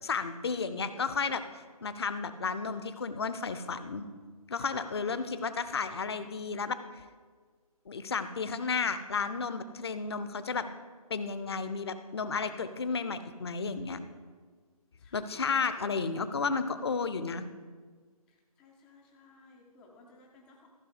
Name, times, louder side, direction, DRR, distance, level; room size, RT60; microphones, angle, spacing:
voice 1, 0.0-1.4 1.8-4.1 4.5-6.7 7.9-10.7 11.1-14.0 15.1-17.4, left 5 dB, 45° left, 11 dB, 0.7 m, -32 dB
voice 2, 4.7-5.4 15.0-16.0 18.6-20.7, left 2 dB, 5° left, 0 dB, 0.4 m, -56 dB
14.5 x 6.0 x 4.9 m, 1.5 s
figure-of-eight pair, 145°, 19 cm